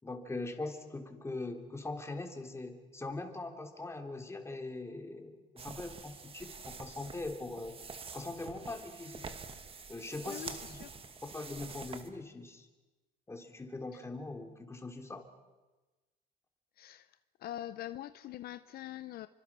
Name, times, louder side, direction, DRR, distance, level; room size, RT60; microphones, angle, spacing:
voice 1, 0.0-7.8 8.1-9.3 9.9-10.8 11.2-12.7 13.3-15.3, left 2 dB, 15° left, 4 dB, 3.4 m, -41 dB
sound 1, 5.6-12.1, right 5 dB, 35° right, 2.1 m, -47 dB
voice 2, 10.2-10.9 13.9-14.0 16.8-17.1 17.4-19.3, left 13 dB, 65° left, 12 dB, 0.8 m, -43 dB
30.0 x 25.0 x 6.2 m, 1.2 s
cardioid pair, 110°, 17 cm